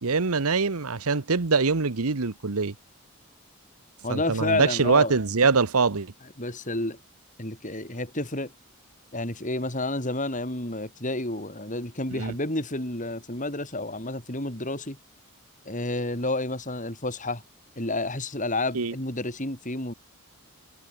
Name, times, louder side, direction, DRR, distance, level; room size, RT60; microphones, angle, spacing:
voice 1, 0.0-2.7 4.1-6.1 12.1-12.3 18.7-18.9, right 4 dB, 80° right, 1.1 m, -23 dB
voice 2, 4.0-5.2 6.4-7.0 7.4-8.5 9.1-15.0 15.6-17.4 17.8-19.9, left 2 dB, 35° left, 5.9 m, -30 dB
head